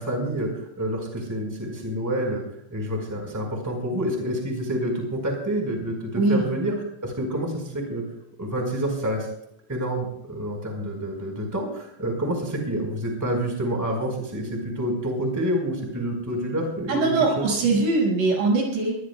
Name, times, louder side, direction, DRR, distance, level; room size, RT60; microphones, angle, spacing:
voice 1, 0.0-2.4 2.7-6.7 7.0-8.0 8.4-9.3 9.7-17.4, right 1 dB, 5° right, 2 dB, 4.1 m, -28 dB
voice 2, 16.9-19.0, right 3 dB, 75° right, 0 dB, 8.0 m, -21 dB
23.5 x 19.0 x 2.3 m, 0.74 s
omnidirectional pair, 5.3 m